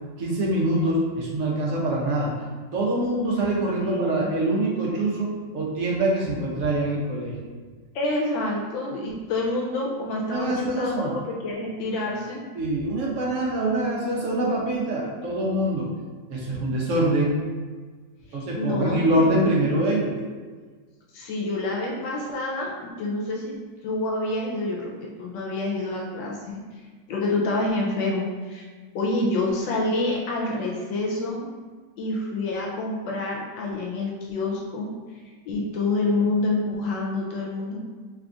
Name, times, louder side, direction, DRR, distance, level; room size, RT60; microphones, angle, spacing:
voice 1, 0.2-2.3 2.7-7.4 10.3-11.2 12.5-15.9 16.3-17.4 18.3-20.2, right 1 dB, 55° right, -4 dB, 0.9 m, -24 dB
voice 2, 3.8-4.3 7.9-12.4 18.6-19.3 21.1-23.5 23.8-26.8 27.1-28.7 28.9-31.4 32.0-34.9 35.5-37.8, left 2 dB, 80° left, -2 dB, 1.3 m, -27 dB
3.4 x 2.3 x 3.8 m, 1.5 s
omnidirectional pair, 2.0 m